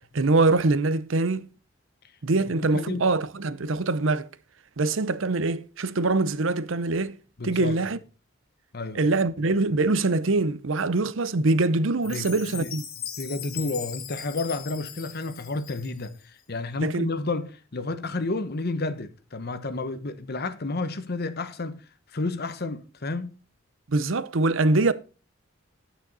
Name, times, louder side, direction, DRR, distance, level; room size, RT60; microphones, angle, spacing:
voice 1, 0.1-1.5 2.2-4.3 4.8-7.2 7.4-8.0 8.9-12.8 16.8-17.1 23.9-24.9, right 3 dB, 65° right, 0.7 m, -23 dB
voice 2, 2.5-3.1 7.4-7.9 8.7-9.0 12.1-12.7 13.2-21.8 22.1-23.3, left 3 dB, 50° left, 1.0 m, -31 dB
Chime, 12.0-16.2, left 9 dB, 85° left, 2.1 m, -39 dB
9.3 x 9.2 x 4.1 m
head